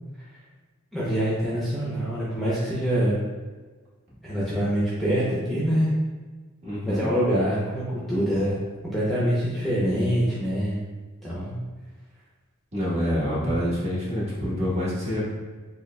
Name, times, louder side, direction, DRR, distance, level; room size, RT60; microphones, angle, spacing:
voice 1, 0.9-3.2 4.2-5.9 6.8-8.6 8.8-10.8 11.2-11.5, equal, ahead, -9 dB, 0.7 m, -25 dB
voice 2, 6.6-7.1 12.7-15.3, equal, 30° right, -8 dB, 1.3 m, -26 dB
6.6 x 2.4 x 2.2 m, 1.4 s
head